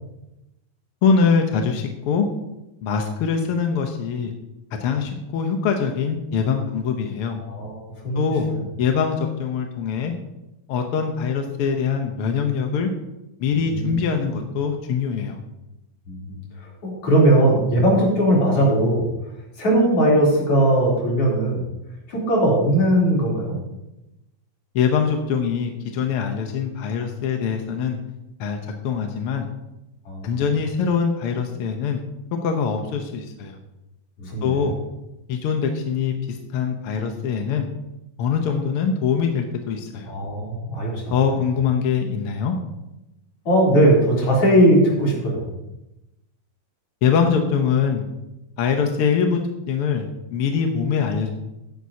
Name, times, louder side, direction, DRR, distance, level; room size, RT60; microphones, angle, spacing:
voice 1, 1.0-2.3 2.8-4.3 4.8-7.4 8.2-8.5 8.8-10.1 10.7-12.9 13.4-15.4 24.7-28.0 28.4-29.5 30.2-32.0 32.4-33.6 34.4-34.7 35.3-37.7 38.2-40.1 41.1-42.6 47.0-48.0 48.6-49.4 49.7-51.3, left 6 dB, 65° left, 4 dB, 1.5 m, -23 dB
voice 2, 7.4-8.2 8.5-8.6 13.6-13.9 16.1-16.4 16.8-19.1 19.6-21.6 22.1-23.6 30.1-30.4 34.2-34.5 40.1-41.1 43.5-45.5, right 1 dB, 50° left, -4 dB, 4.4 m, -19 dB
14.0 x 10.5 x 2.8 m, 0.95 s
omnidirectional pair, 3.5 m